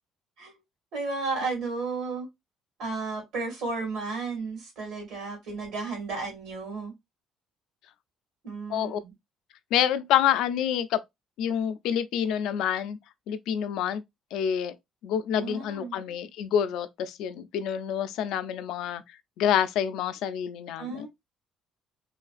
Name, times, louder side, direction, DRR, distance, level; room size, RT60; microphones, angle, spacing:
voice 1, 0.9-2.3 2.8-6.9 8.4-9.1 15.4-16.0 20.8-21.1, right 3 dB, 80° right, 1.9 m, -33 dB
voice 2, 8.7-9.0 9.7-11.0 11.4-13.0 13.3-14.0 14.3-14.8 15.0-19.0 19.4-21.1, left 9 dB, 80° left, 0.3 m, -27 dB
3.2 x 2.4 x 2.3 m
cardioid pair, 120°, 0 cm